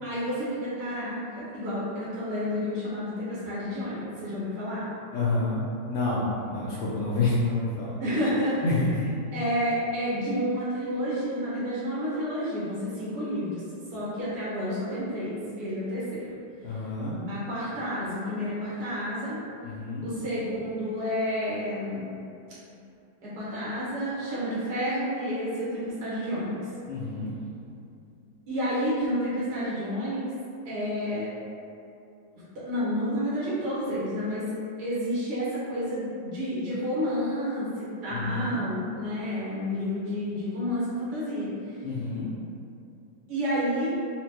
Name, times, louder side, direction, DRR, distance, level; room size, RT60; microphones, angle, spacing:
voice 1, 0.0-4.8 8.0-8.8 9.3-13.6 13.9-16.4 17.1-19.4 20.0-22.1 23.2-26.7 28.5-30.2 30.6-31.3 32.6-34.4 34.8-41.8 43.3-43.9, equal, 70° right, -9 dB, 1.4 m, -30 dB
voice 2, 5.1-5.6 5.9-7.9 8.6-9.1 16.6-17.2 19.6-20.1 26.9-27.3 38.1-38.6 41.8-42.3, left 3 dB, 85° left, -8 dB, 0.6 m, -28 dB
4.2 x 2.1 x 2.8 m, 2.6 s
omnidirectional pair, 1.9 m